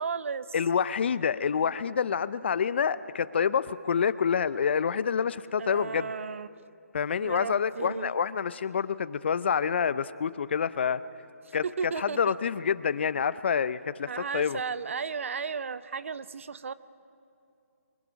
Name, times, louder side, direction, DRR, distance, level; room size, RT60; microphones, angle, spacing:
voice 1, 0.0-0.5 5.6-6.5 7.2-8.2 11.5-12.4 14.1-16.7, right 5 dB, 55° right, 15 dB, 0.7 m, -34 dB
voice 2, 0.5-6.1 6.9-11.0 11.5-14.6, left 7 dB, 45° left, 17 dB, 0.6 m, -27 dB
29.0 x 24.0 x 5.2 m, 2.6 s
figure-of-eight pair, 150°, 8 cm